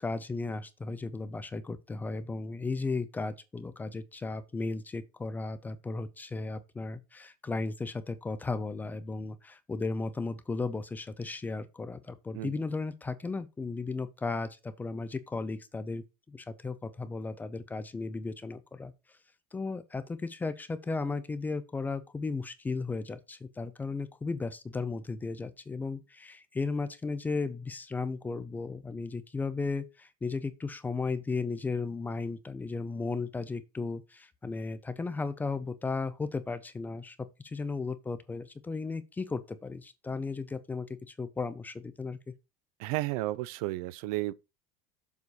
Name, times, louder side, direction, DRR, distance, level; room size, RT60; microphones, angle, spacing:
voice 1, 0.0-18.9 19.5-37.2 37.4-42.2, left 3 dB, 10° left, 0.4 m, -35 dB
voice 2, 42.8-44.3, right 18 dB, 75° right, 0.6 m, -32 dB
7.1 x 4.1 x 6.3 m
cardioid pair, 180°, 19 cm